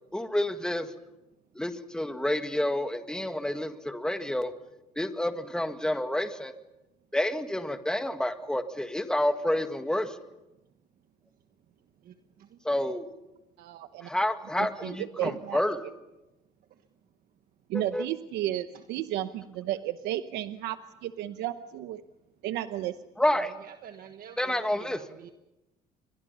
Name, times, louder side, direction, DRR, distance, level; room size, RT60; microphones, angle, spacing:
voice 1, 0.1-0.9 1.6-4.5 5.0-6.5 7.1-10.2 12.7-13.1 14.0-15.9 17.7-18.1 23.2-23.5 24.4-25.0, left 1 dB, 5° left, 7 dB, 1.8 m, -29 dB
voice 2, 12.0-12.6 15.2-15.4 23.6-25.3, right 9 dB, 60° right, 7 dB, 1.4 m, -45 dB
voice 3, 13.6-14.1 14.6-15.6 17.7-22.0 22.4-22.9, right 13 dB, 85° right, 10 dB, 0.9 m, -33 dB
29.5 x 23.0 x 5.6 m, 0.97 s
cardioid pair, 110°, 17 cm